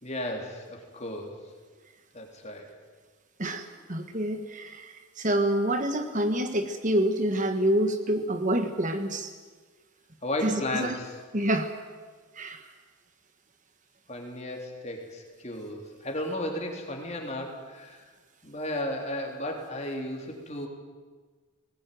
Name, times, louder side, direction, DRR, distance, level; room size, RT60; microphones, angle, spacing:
voice 1, 0.0-1.4 2.1-2.7 10.2-11.1 14.1-18.0 18.4-20.7, left 1 dB, 30° left, 2 dB, 3.4 m, -34 dB
voice 2, 3.4-9.3 10.4-10.9 11.3-11.7 12.4-12.6, right 1 dB, 35° right, 7 dB, 1.4 m, -27 dB
19.5 x 19.5 x 9.3 m, 1.4 s
head